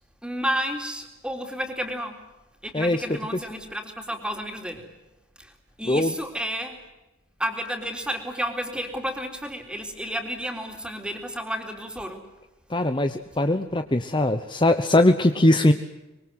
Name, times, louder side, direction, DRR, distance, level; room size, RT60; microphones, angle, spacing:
voice 1, 0.2-2.2 2.6-4.9 5.4-6.8 7.4-12.2 12.9-13.0, equal, 5° right, 4 dB, 3.7 m, -31 dB
voice 2, 12.7-15.7, left 1 dB, 25° left, 8 dB, 1.0 m, -20 dB
25.0 x 23.5 x 7.9 m, 0.99 s
head